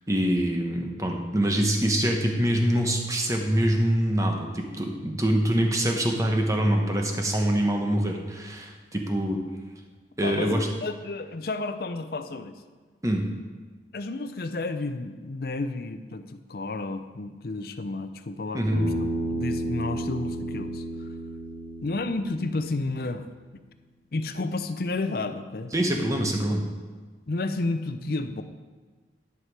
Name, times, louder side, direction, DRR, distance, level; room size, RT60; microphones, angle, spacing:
voice 1, 0.1-9.4 10.2-10.7 13.0-13.2 18.5-18.8 25.7-26.6, right 1 dB, 20° right, 2 dB, 1.0 m, -24 dB
voice 2, 10.2-12.6 13.9-21.1 21.8-23.3 24.1-25.7 27.3-28.4, left 2 dB, 55° left, 9 dB, 0.6 m, -31 dB
Bass guitar, 18.7-23.0, right 1 dB, 75° right, 2.6 m, -32 dB
11.0 x 5.9 x 4.7 m, 1.4 s
head